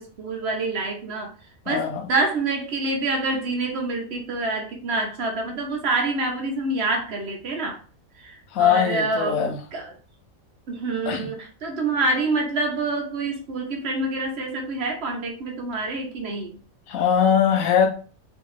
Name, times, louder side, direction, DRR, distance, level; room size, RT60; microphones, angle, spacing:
voice 1, 0.0-1.3 1.7-7.8 8.2-9.9 10.7-16.6, right 2 dB, 55° right, 1.0 m, -27 dB
voice 2, 1.7-2.0 8.5-9.6 11.1-11.2 16.9-17.9, left 8 dB, 85° left, 1.1 m, -21 dB
3.1 x 2.8 x 3.1 m
omnidirectional pair, 1.4 m